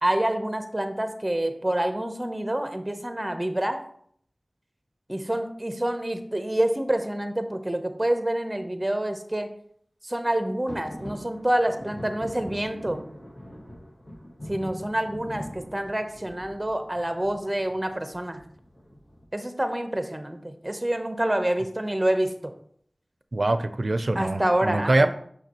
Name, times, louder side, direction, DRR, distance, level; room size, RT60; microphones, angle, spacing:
voice 1, 0.0-3.8 5.1-9.5 10.0-13.0 14.5-18.4 19.3-22.5 24.1-25.1, right 1 dB, 25° right, 0.8 m, -27 dB
sound 1, 10.7-19.2, equal, 70° left, 2.0 m, -42 dB
voice 2, 23.3-25.1, right 2 dB, 60° right, 0.4 m, -23 dB
6.0 x 5.8 x 2.9 m
wide cardioid pair, 45°, 0 cm